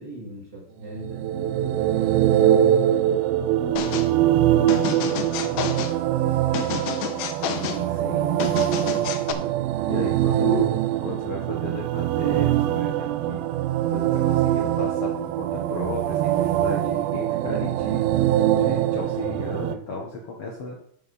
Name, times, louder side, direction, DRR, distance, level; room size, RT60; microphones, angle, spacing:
voice 1, 0.0-2.9 4.0-6.7 7.7-9.1, right 1 dB, 30° right, -4 dB, 3.5 m, -39 dB
sound 1, 1.0-19.7, right 12 dB, 85° right, 2.4 m, -23 dB
sound 2, 3.8-4.1 4.7-6.0 6.5-7.8 8.4-9.3, left 9 dB, 85° left, 2.7 m, -30 dB
voice 2, 7.5-8.4 9.8-10.7 11.0-13.4 13.9-18.0 18.6-20.8, left 2 dB, 55° left, -2 dB, 1.8 m, -34 dB
11.0 x 7.5 x 4.2 m, 0.65 s
omnidirectional pair, 4.3 m